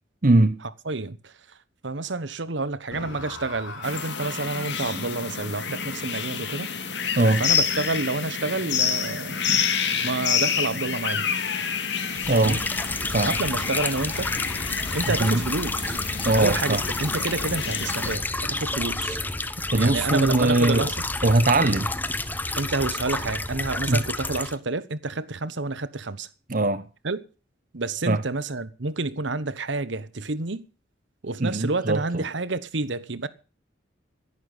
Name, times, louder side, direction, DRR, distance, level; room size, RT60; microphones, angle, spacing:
voice 1, 0.2-0.6 7.1-7.4 12.3-12.6 13.1-13.3 15.2-15.4 16.2-16.8 19.7-20.9 21.2-21.9 23.9-24.0 26.5-26.9 28.1-28.2 31.4-32.2, right 2 dB, 45° right, 0.9 m, -21 dB
voice 2, 0.8-1.6 1.8-6.7 7.4-9.4 10.0-11.3 12.3-12.6 13.2-14.3 14.9-16.0 16.4-19.2 19.7-21.0 22.6-26.3 27.0-27.2 27.7-30.7 31.2-33.3, right 3 dB, 70° right, 1.1 m, -29 dB
sound 1, 2.9-10.0, left 3 dB, 85° left, 3.4 m, -43 dB
sound 2, 3.8-18.2, left 7 dB, 65° left, 2.2 m, -28 dB
sound 3, 12.1-24.6, left 2 dB, 10° left, 0.8 m, -30 dB
11.0 x 11.0 x 8.1 m
head